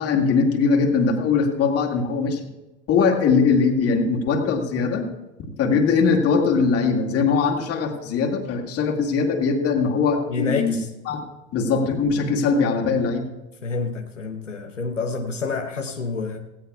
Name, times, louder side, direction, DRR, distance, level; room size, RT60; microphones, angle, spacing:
voice 1, 0.0-2.4 2.9-5.1 5.4-10.8 11.1-11.3 11.5-13.3, left 5 dB, 40° left, 1 dB, 2.2 m, -21 dB
voice 2, 10.3-10.9 13.6-16.4, left 4 dB, 90° left, 4 dB, 0.9 m, -28 dB
18.0 x 15.5 x 2.4 m, 1.1 s
figure-of-eight pair, 80°, 36 cm